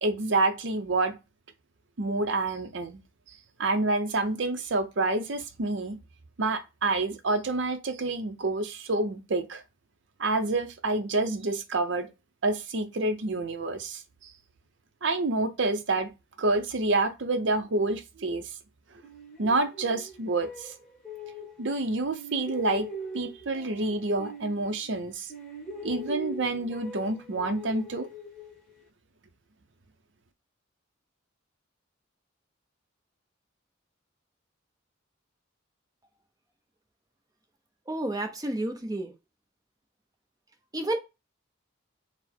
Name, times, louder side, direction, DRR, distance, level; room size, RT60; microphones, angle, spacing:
voice 1, 0.0-1.2 2.0-3.0 3.6-6.0 6.4-9.6 10.2-12.1 12.4-14.3 15.0-16.1 16.4-18.5 19.4-20.7 21.6-25.3 25.8-28.1, right 2 dB, 60° right, 0.6 m, -28 dB
sound 1, 19.0-21.8 22.1-25.0 25.3-28.8, equal, ahead, 1.3 m, -42 dB
voice 2, 37.9-39.1 40.7-41.0, right 1 dB, 20° right, 0.7 m, -30 dB
4.3 x 2.1 x 4.3 m
head